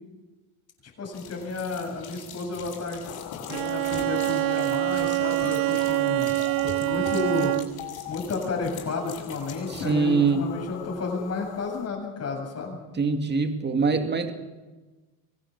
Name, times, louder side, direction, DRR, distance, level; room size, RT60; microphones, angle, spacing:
voice 1, 1.0-3.0 3.5-7.5 8.1-12.8, left 3 dB, 35° left, 1 dB, 8.0 m, -32 dB
sound 1, 1.1-9.9, left 6 dB, 60° left, 7.6 m, -43 dB
sound 2, 3.0-11.9, left 14 dB, 80° left, 1.6 m, -41 dB
Bowed string instrument, 3.5-7.9, right 22 dB, 55° right, 0.7 m, -25 dB
voice 2, 9.7-10.5 12.7-14.3, right 4 dB, 25° right, 7 dB, 2.4 m, -24 dB
23.5 x 16.5 x 7.6 m, 1.2 s
cardioid pair, 115°, 43 cm